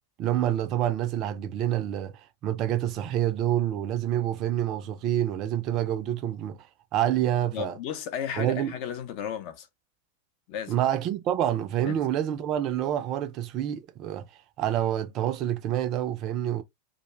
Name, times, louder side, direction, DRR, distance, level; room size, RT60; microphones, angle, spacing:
voice 1, 0.2-2.1 2.4-6.7 6.9-7.7 8.4-8.7 10.7-14.3 14.6-16.6, right 11 dB, 35° right, 0.4 m, -27 dB
voice 2, 7.5-9.7 10.5-10.8 11.8-12.1, left 9 dB, 45° left, 0.6 m, -34 dB
2.4 x 2.1 x 3.0 m
figure-of-eight pair, 90°, 0 cm